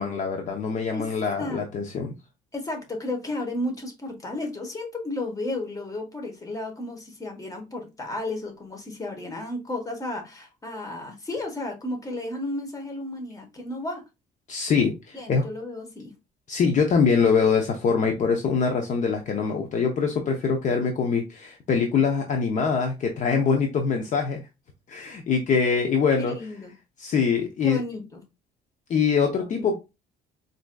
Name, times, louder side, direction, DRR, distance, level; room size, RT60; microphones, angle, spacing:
voice 1, 0.0-2.1 14.5-15.4 16.5-24.4 24.9-26.3 27.0-27.8 28.9-29.8, left 5 dB, 45° left, 0.6 m, -23 dB
voice 2, 2.5-14.0 15.1-16.1 26.2-26.7 27.6-28.2 29.3-29.7, left 2 dB, 20° left, 1.2 m, -33 dB
4.3 x 2.6 x 2.2 m
cardioid pair, 110°, 17 cm